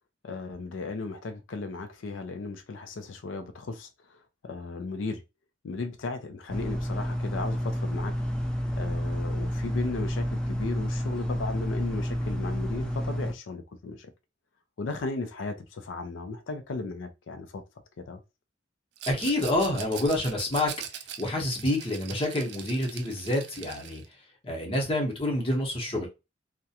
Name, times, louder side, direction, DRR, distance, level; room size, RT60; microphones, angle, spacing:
voice 1, 0.2-3.9 4.4-5.2 5.6-8.1 8.8-14.1 14.8-17.6 18.0-18.2, left 3 dB, 80° left, 0.4 m, -35 dB
sound 1, 6.5-13.3, equal, 5° left, 0.4 m, -30 dB
Rattle, 19.0-24.1, right 9 dB, 60° right, 0.4 m, -41 dB
voice 2, 19.1-20.7 21.2-24.0 24.4-26.1, left 1 dB, 30° left, 0.8 m, -27 dB
2.4 x 2.1 x 2.7 m
head